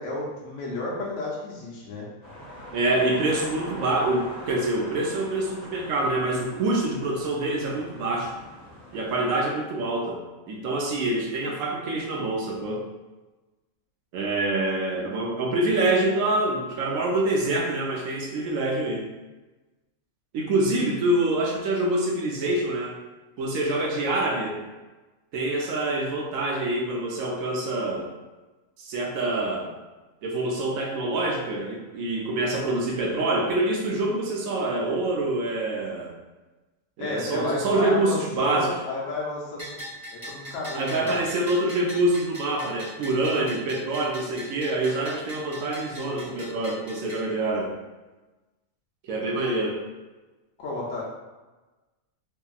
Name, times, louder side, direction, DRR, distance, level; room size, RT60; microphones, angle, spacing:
voice 1, 0.0-2.1 37.0-39.8 40.1-41.1 50.6-51.0, left 2 dB, 65° left, -4 dB, 0.8 m, -32 dB
sound 1, 2.2-9.3, left 1 dB, 35° left, 0.9 m, -43 dB
voice 2, 2.7-8.3 8.9-10.2 10.5-12.8 14.1-19.1 20.3-23.0 23.4-24.6 25.3-28.1 28.8-29.7 30.2-36.1 37.0-38.7 40.7-47.7 49.0-49.8, right 2 dB, 70° right, -1 dB, 0.9 m, -26 dB
Bell, 39.6-47.2, equal, 30° right, 1.0 m, -41 dB
2.8 x 2.5 x 2.3 m, 1.2 s
omnidirectional pair, 1.5 m